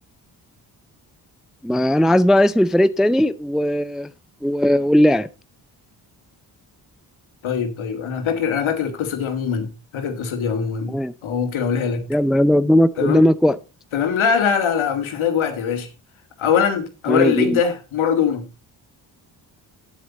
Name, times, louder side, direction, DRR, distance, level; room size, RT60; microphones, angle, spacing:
voice 1, 1.6-4.1 4.4-5.3 10.9-11.1 12.1-13.6 17.1-17.6, left 1 dB, ahead, 0.5 m, -17 dB
voice 2, 7.4-10.9 11.2-12.0 13.0-13.2 13.9-15.9 16.4-18.5, left 7 dB, 70° left, 1.9 m, -22 dB
9.2 x 8.0 x 4.1 m
hypercardioid pair, 40°, 49 cm